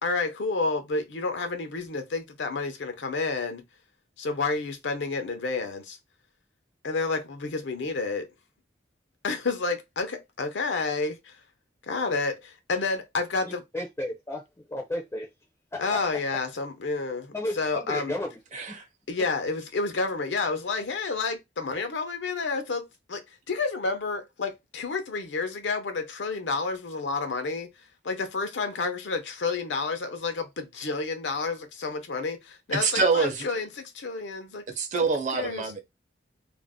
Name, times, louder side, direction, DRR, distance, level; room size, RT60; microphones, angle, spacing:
voice 1, 0.0-3.6 4.2-6.0 6.8-8.3 9.2-11.4 11.8-13.6 15.8-18.1 19.1-23.2 23.5-27.7 28.0-34.6 35.3-35.6, left 4 dB, 90° left, 0.6 m, -30 dB
voice 2, 13.4-14.4 14.7-15.3 15.7-16.0 17.3-18.4, left 1 dB, 15° left, 0.4 m, -33 dB
voice 3, 18.5-18.8 32.7-33.5 34.8-35.8, right 4 dB, 40° right, 0.6 m, -25 dB
2.5 x 2.0 x 3.5 m
head